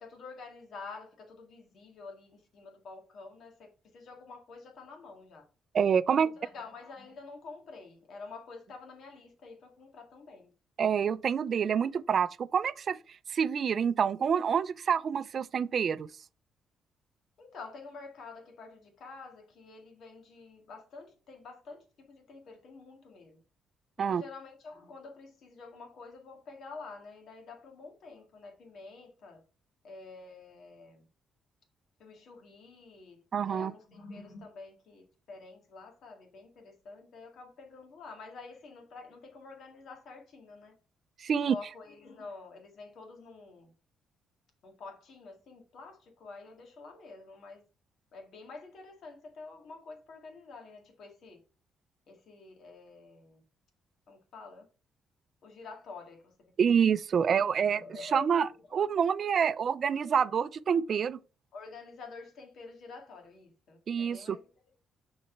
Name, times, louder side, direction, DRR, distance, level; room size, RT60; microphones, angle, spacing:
voice 1, 0.0-5.4 6.1-10.5 17.4-23.4 24.0-29.4 29.8-31.0 32.0-40.7 41.4-43.7 44.6-47.6 48.1-51.4 52.1-53.4 54.1-54.7 55.4-56.4 57.2-58.9 61.5-64.4, left 4 dB, 65° left, 1.9 m, -48 dB
voice 2, 5.7-6.3 10.8-13.0 13.3-16.1 24.0-24.2 33.3-33.7 41.2-41.5 56.6-61.2 63.9-64.4, right 7 dB, 55° right, 0.4 m, -27 dB
6.4 x 4.0 x 4.5 m
cardioid pair, 90°, 0 cm